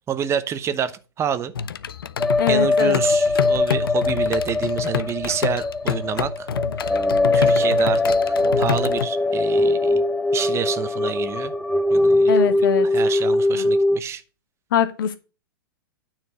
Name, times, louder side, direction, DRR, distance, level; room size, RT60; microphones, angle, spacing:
voice 1, 0.1-1.5 2.5-6.5 6.8-7.0 7.3-10.0 10.3-11.5 11.9-12.6 12.9-14.2, right 8 dB, 25° right, 0.8 m, -28 dB
sound 1, 1.6-9.1, left 7 dB, 80° left, 0.5 m, -28 dB
sound 2, 2.2-14.0, left 2 dB, 5° left, 0.5 m, -21 dB
voice 2, 2.4-3.0 12.3-12.9 13.6-13.7 14.7-15.2, left 8 dB, 65° left, 1.3 m, -22 dB
9.5 x 4.4 x 6.3 m
hypercardioid pair, 115°, 12 cm